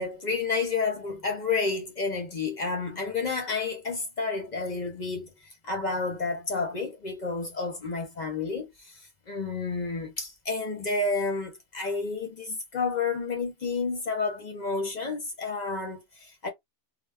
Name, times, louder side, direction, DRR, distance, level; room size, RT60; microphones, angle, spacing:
voice 1, 0.0-5.3 5.6-16.5, left 4 dB, 50° left, 0.7 m, -30 dB
2.2 x 2.0 x 3.4 m
omnidirectional pair, 1.1 m